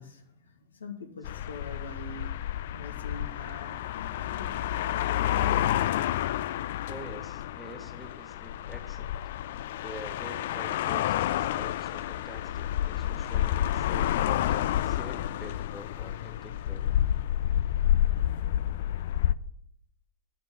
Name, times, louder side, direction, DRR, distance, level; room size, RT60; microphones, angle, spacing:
voice 1, 0.0-5.5 6.6-6.7, left 3 dB, 70° left, 5 dB, 1.2 m, -45 dB
sound 1, 1.2-19.3, left 12 dB, 55° left, 0.3 m, -29 dB
voice 2, 6.9-9.2 9.8-17.0, right 1 dB, ahead, 3 dB, 1.4 m, -46 dB
8.9 x 5.9 x 7.0 m, 0.72 s
figure-of-eight pair, 90°, 0 cm